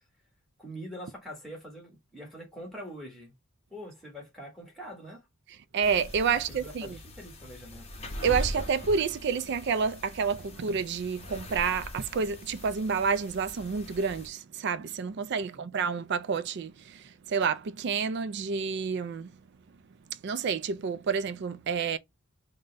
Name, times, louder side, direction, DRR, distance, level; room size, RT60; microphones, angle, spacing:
voice 1, 0.6-3.3 3.7-5.2 6.5-7.9 15.5-15.6, equal, ahead, 1.2 m, -44 dB
voice 2, 5.7-7.0 8.2-19.3 20.1-22.0, right 6 dB, 50° right, 0.3 m, -29 dB
sound 1, 5.8-14.3, left 1 dB, 30° left, 0.7 m, -41 dB
3.7 x 2.2 x 3.8 m
head